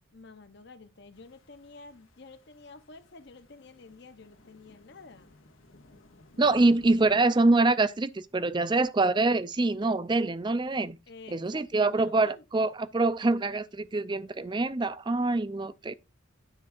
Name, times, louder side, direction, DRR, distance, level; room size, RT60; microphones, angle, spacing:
voice 1, 0.1-5.3 11.1-11.6 11.9-12.7, left 3 dB, 60° left, 0.8 m, -50 dB
sound 1, 1.1-7.2, left 2 dB, 90° left, 1.6 m, -57 dB
voice 2, 6.4-11.0 11.3-15.9, right 2 dB, 25° right, 0.4 m, -25 dB
9.9 x 3.6 x 5.8 m
head